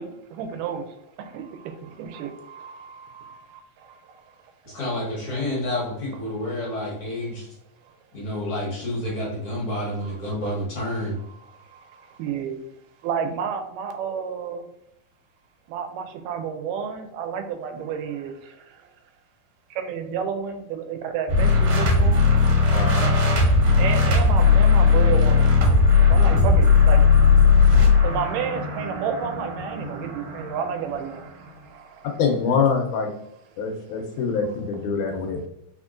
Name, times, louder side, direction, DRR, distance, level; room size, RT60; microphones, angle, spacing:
voice 1, 0.0-4.2 4.7-4.8 10.0-10.2 11.3-12.6 13.0-14.7 15.7-18.8 19.7-22.3 23.8-25.5 26.1-27.4 27.8-32.1, right 7 dB, 85° right, 6 dB, 2.1 m, -31 dB
voice 2, 4.7-7.5 8.1-11.1, left 1 dB, 60° left, -3 dB, 1.6 m, -29 dB
sound 1, 21.3-31.2, left 4 dB, 65° right, 1.8 m, -18 dB
voice 3, 22.7-23.1 32.2-33.1 33.6-35.4, left 5 dB, 75° left, 3 dB, 2.0 m, -24 dB
4.4 x 4.3 x 2.4 m, 0.80 s
omnidirectional pair, 3.8 m